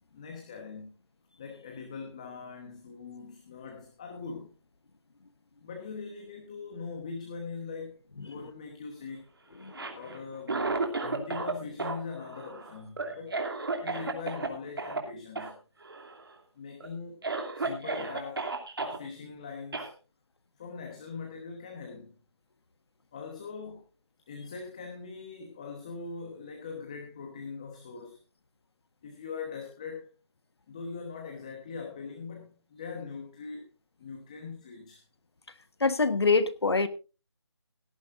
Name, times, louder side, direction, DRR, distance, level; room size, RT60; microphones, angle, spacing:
voice 1, 0.1-0.9 1.4-4.5 5.6-9.2 9.9-10.7 11.0-13.4 13.8-15.6 16.6-17.2 17.5-18.5 18.8-19.9 20.6-22.2 23.1-23.8 24.3-28.2 29.0-30.1 30.7-33.6 34.0-35.0, left 5 dB, 15° left, 2 dB, 1.1 m, -41 dB
Cough, 9.6-11.5 11.8-14.5 14.8-15.0 15.3-15.5 15.8-16.3 16.8-16.9 17.2-19.0 19.7-19.9, right 3 dB, 55° right, 2.6 m, -33 dB
voice 2, 35.8-36.9, left 4 dB, 65° left, 13 dB, 1.3 m, -24 dB
17.0 x 13.5 x 2.5 m, 0.31 s
figure-of-eight pair, 175°, 15 cm